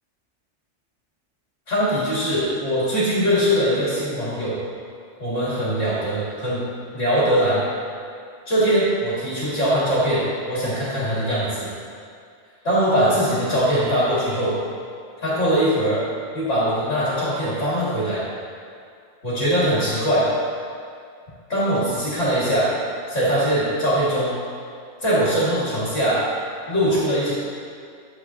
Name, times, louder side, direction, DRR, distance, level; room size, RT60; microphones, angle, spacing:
voice 1, 1.7-4.6 5.2-6.7 6.9-7.6 8.5-11.7 12.6-14.6 15.2-16.0 16.3-18.2 19.2-20.3 21.5-22.7 23.1-24.4 25.0-26.3 26.7-27.3, equal, 80° left, -9 dB, 3.1 m, -21 dB
11.5 x 9.0 x 3.1 m, 2.3 s
omnidirectional pair, 1.3 m